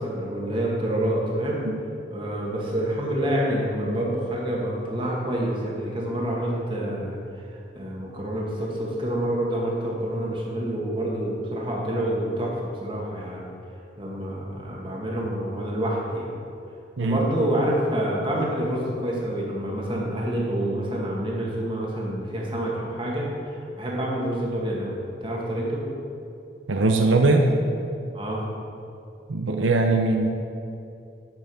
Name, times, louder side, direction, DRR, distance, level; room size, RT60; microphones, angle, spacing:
voice 1, 0.0-1.6 2.1-13.4 14.0-16.3 17.0-25.8 28.1-28.4, right 1 dB, 25° right, -3 dB, 1.8 m, -27 dB
voice 2, 26.7-27.5 29.3-30.3, right 3 dB, 85° right, 4 dB, 0.7 m, -20 dB
8.9 x 5.8 x 7.1 m, 2.6 s
head